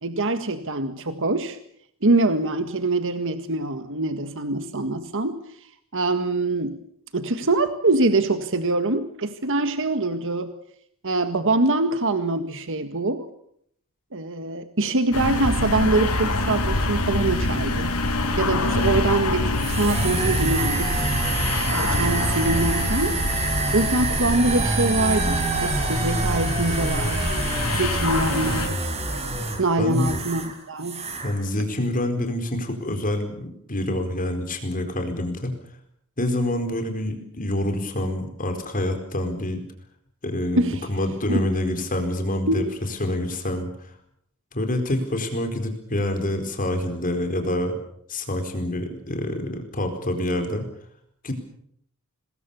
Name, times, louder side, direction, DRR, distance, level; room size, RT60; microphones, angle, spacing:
voice 1, 0.0-1.6 2.0-5.4 5.9-6.8 7.1-10.5 11.0-13.3 14.1-17.9 18.4-21.1 21.7-27.4 27.7-28.9 29.6-31.0 40.5-40.9 41.3-41.4 42.5-42.6, right 2 dB, 60° right, 9 dB, 1.7 m, -24 dB
sound 1, 15.1-28.7, left 2 dB, 75° left, 5.7 m, -26 dB
sound 2, 19.5-30.5 30.8-31.3, right 2 dB, 30° right, 4.7 m, -27 dB
voice 2, 29.8-30.1 31.2-35.5 36.2-39.6 40.2-42.6 43.0-43.7 44.5-47.7 48.1-50.6 51.2-51.3, left 1 dB, 40° left, 6 dB, 4.5 m, -26 dB
26.0 x 21.0 x 7.0 m, 0.69 s
head